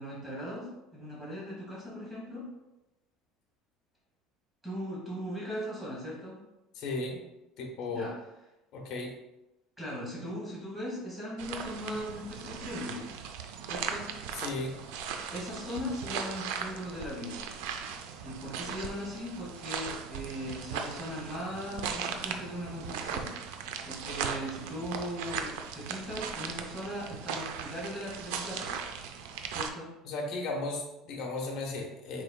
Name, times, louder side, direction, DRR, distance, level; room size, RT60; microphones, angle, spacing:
voice 1, 0.0-2.5 4.6-6.4 7.9-8.1 9.8-13.0 13.6-14.1 15.3-17.4 18.2-23.3 23.8-28.7 29.5-29.9, equal, 10° right, -6 dB, 1.3 m, -39 dB
voice 2, 6.7-7.2 7.6-8.1 8.7-9.1 14.3-14.8 30.0-32.2, left 2 dB, 50° left, 0 dB, 1.0 m, -35 dB
sound 1, 11.4-29.7, right 6 dB, 90° right, 0.4 m, -38 dB
4.9 x 4.0 x 2.3 m, 0.95 s
cardioid pair, 155°, 0 cm